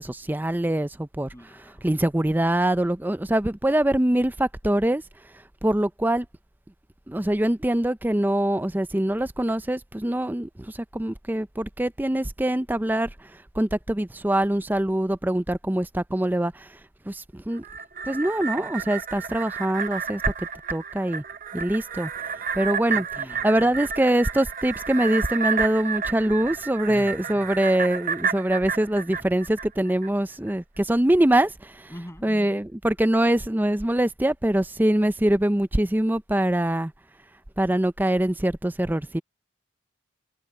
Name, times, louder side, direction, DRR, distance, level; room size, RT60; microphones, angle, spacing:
voice 1, 0.0-1.3 1.8-5.0 5.6-6.3 7.1-10.5 10.9-13.1 13.6-16.5 17.1-17.6 18.1-20.2 20.7-21.2 21.5-22.1 22.5-23.1 23.4-31.7 32.2-36.9 37.6-39.2, right 1 dB, 10° right, 0.5 m, -23 dB
voice 2, 1.3-1.9 22.9-23.5 26.9-27.1 31.9-32.3, equal, 15° left, 8.0 m, -42 dB
sound 1, 17.5-30.1 30.5-30.6, right 6 dB, 45° right, 0.9 m, -31 dB
head